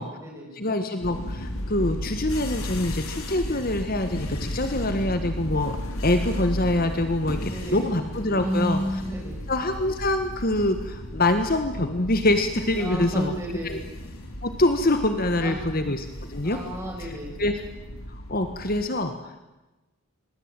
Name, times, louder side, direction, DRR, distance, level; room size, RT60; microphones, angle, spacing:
voice 1, 0.0-0.5 7.2-7.9 8.3-9.4 12.7-13.8 15.2-15.6 16.5-17.3, right 1 dB, 10° right, -1 dB, 7.8 m, -32 dB
voice 2, 0.5-5.8 6.0-8.8 9.5-13.3 13.6-13.8 14.4-16.6 17.0-17.1 17.4-17.6 18.1-19.5, left 1 dB, 40° left, 8 dB, 1.5 m, -25 dB
sound 1, 1.0-18.9, equal, 75° left, 3.4 m, -34 dB
25.5 x 20.0 x 9.0 m, 1.1 s
head